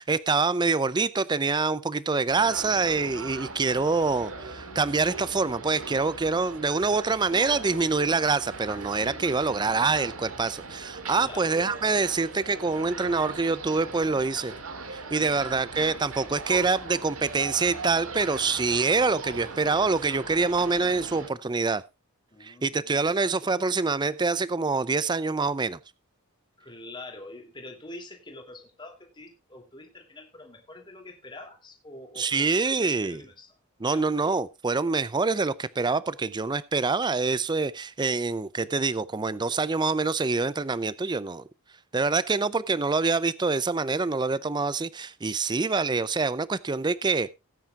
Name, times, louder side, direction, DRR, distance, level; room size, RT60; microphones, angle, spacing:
voice 1, 0.0-14.5 14.9-21.8 22.4-25.8 32.2-33.2 33.8-41.4 41.9-47.3, right 4 dB, 20° right, 0.5 m, -26 dB
sound 1, 2.3-21.3, right 3 dB, 70° right, 2.2 m, -39 dB
voice 2, 11.1-11.5 15.1-15.8 22.3-22.8 23.0-23.4 26.6-34.1, left 2 dB, 20° left, 2.8 m, -46 dB
18.0 x 9.4 x 2.4 m
head